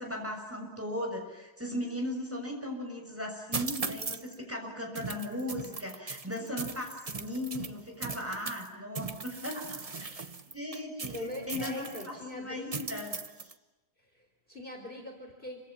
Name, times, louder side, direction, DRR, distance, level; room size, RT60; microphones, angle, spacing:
voice 1, 0.0-9.6 10.1-10.2 10.5-13.1 13.4-13.5, left 1 dB, 5° right, 1 dB, 7.0 m, -37 dB
sound 1, 3.5-4.3 4.9-8.7 8.9-12.1 12.7-13.5, right 4 dB, 30° right, 0.7 m, -39 dB
voice 2, 11.1-12.7 14.0-15.7, left 1 dB, 25° left, 2 dB, 4.1 m, -42 dB
28.5 x 26.0 x 7.6 m, 1.1 s
omnidirectional pair, 2.2 m